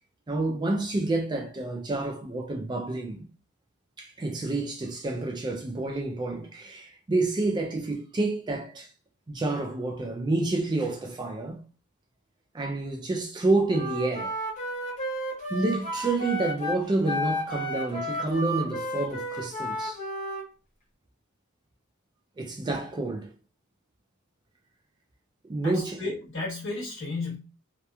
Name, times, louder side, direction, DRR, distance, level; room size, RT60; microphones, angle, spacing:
voice 1, 0.3-3.3 4.0-8.9 9.3-11.6 12.5-14.3 15.5-20.0 22.4-23.3 25.5-26.0, right 2 dB, 20° right, 0.3 m, -29 dB
Wind instrument woodwind instrument, 13.7-20.5, equal, 35° left, 0.7 m, -32 dB
voice 2, 25.6-27.4, left 3 dB, 55° left, 1.3 m, -33 dB
2.9 x 2.1 x 2.3 m
head